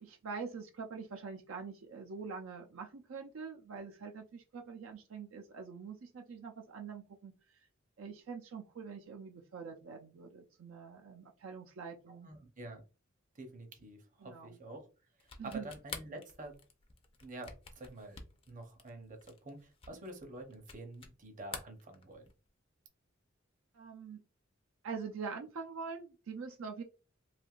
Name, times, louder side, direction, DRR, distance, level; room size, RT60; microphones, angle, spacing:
voice 1, 0.0-7.3 8.0-12.3 14.2-14.6 15.4-15.7 19.9-20.0 23.7-24.2 24.8-26.8, right 5 dB, 80° right, 3 dB, 0.5 m, -44 dB
voice 2, 12.2-12.8 13.3-14.9 15.2-16.6 17.2-18.2 18.5-22.3, right 2 dB, 40° right, 4 dB, 0.7 m, -48 dB
sound 1, 15.2-21.2 21.4-22.5, left 5 dB, 30° left, 0.5 m, -48 dB
3.3 x 2.5 x 2.4 m, 0.33 s
head